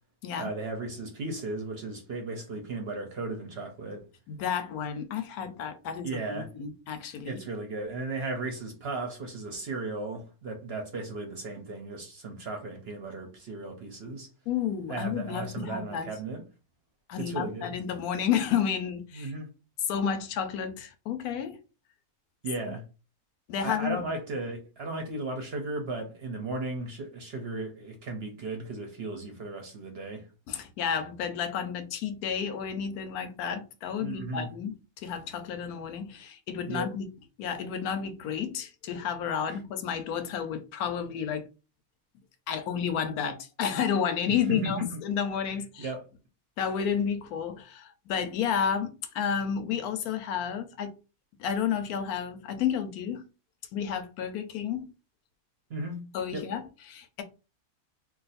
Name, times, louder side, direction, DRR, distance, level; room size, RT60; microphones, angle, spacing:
voice 1, 0.4-4.0 6.0-6.5 7.3-14.3 14.9-16.4 17.2-17.8 19.1-19.5 22.4-22.8 23.6-30.3 34.0-34.5 36.7-36.9 39.5-39.6 44.5-44.9 45.8-46.0 55.7-56.1 56.3-56.5, right 2 dB, 55° right, 0.7 m, -35 dB
voice 2, 4.3-7.4 14.5-16.1 17.1-19.3 19.9-21.6 22.7-22.8 23.5-24.0 30.5-37.0 37.4-41.5 42.5-45.9 46.6-50.9 51.4-53.2 53.7-54.9 56.1-57.2, left 7 dB, 80° left, 1.1 m, -31 dB
2.5 x 2.4 x 4.0 m
omnidirectional pair, 1.6 m